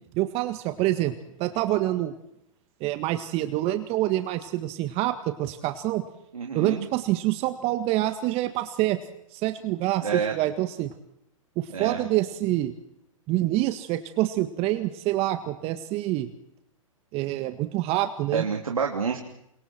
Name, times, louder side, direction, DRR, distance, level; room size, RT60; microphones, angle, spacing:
voice 1, 0.1-1.1 1.4-2.1 2.8-6.1 6.5-9.0 9.3-10.9 11.6-12.7 13.3-16.3 17.1-18.5, right 15 dB, 35° right, 9 dB, 1.7 m, -26 dB
voice 2, 6.3-6.9 10.0-10.3 11.7-12.1 18.3-19.2, right 6 dB, 90° right, 2 dB, 3.1 m, -28 dB
29.0 x 27.0 x 4.6 m, 0.79 s
hypercardioid pair, 120°, 17 cm